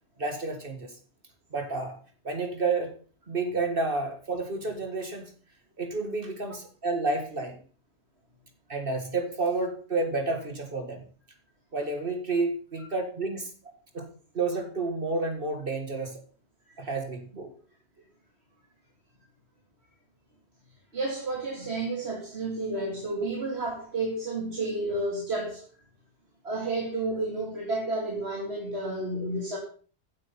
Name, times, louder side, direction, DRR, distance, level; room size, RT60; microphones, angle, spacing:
voice 1, 0.2-1.0 1.5-2.0 2.2-2.9 3.3-5.3 5.8-7.6 8.7-11.0 11.7-13.5 13.9-14.1 14.3-16.2 16.8-17.5, right 3 dB, 55° right, 5 dB, 2.0 m, -30 dB
voice 2, 20.9-25.6 26.4-29.6, right 2 dB, 70° right, -1 dB, 2.8 m, -31 dB
15.5 x 8.4 x 5.6 m, 0.42 s
omnidirectional pair, 1.1 m